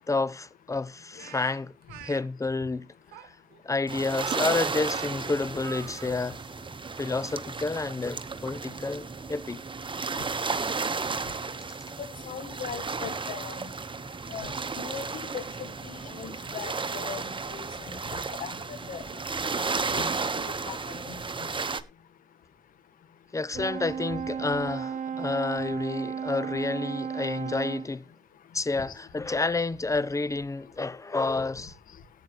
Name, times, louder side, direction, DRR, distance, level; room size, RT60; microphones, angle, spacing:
voice 1, 0.1-1.7 2.0-2.9 3.1-3.3 3.6-6.4 7.0-9.6 11.6-11.7 23.3-28.1 28.5-31.8, left 3 dB, 20° left, 0.7 m, -30 dB
Speech, 1.2-2.2 3.1-6.1, right 12 dB, 90° right, 0.9 m, -43 dB
sound 1, 3.9-21.8, right 4 dB, 35° right, 1.3 m, -33 dB
voice 2, 12.2-13.6 14.3-15.1 15.3-19.0 19.5-19.6 19.9-20.1 20.6-20.8 21.1-21.5, left 7 dB, 70° left, 1.5 m, -40 dB
Brass instrument, 23.5-27.9, right 7 dB, 60° right, 0.7 m, -34 dB
15.5 x 9.3 x 3.2 m
hypercardioid pair, 45°, 14 cm